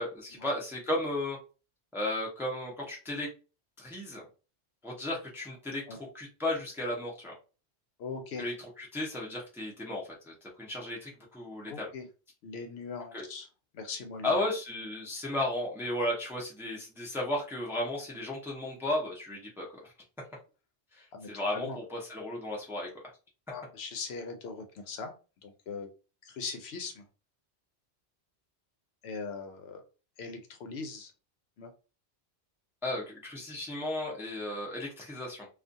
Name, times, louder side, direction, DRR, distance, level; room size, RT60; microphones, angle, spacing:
voice 1, 0.0-1.4 1.9-3.3 3.8-4.2 4.8-7.3 8.4-11.9 13.1-13.2 14.2-19.7 20.9-22.9 32.8-35.5, left 1 dB, 5° right, -3 dB, 0.6 m, -34 dB
voice 2, 8.0-8.4 11.7-12.1 12.4-13.5 13.7-14.4 21.1-21.8 23.5-25.1 25.4-25.9 26.2-27.0 29.0-29.8 30.2-31.1 31.6-31.7, left 4 dB, 70° left, 6 dB, 0.8 m, -40 dB
2.4 x 2.3 x 2.6 m, 0.33 s
omnidirectional pair, 1.2 m